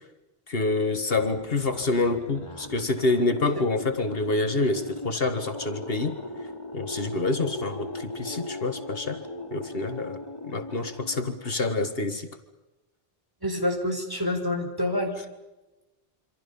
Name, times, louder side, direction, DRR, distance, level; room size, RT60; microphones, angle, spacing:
voice 1, 0.5-6.2 6.7-9.2 9.5-10.2 10.4-12.3, left 3 dB, 65° left, 7 dB, 1.9 m, -27 dB
sound 1, 0.9-12.1, left 1 dB, 30° left, 2.7 m, -39 dB
voice 2, 13.4-15.1, left 1 dB, 20° right, 4 dB, 4.3 m, -27 dB
27.5 x 26.0 x 5.5 m, 1.1 s
omnidirectional pair, 1.1 m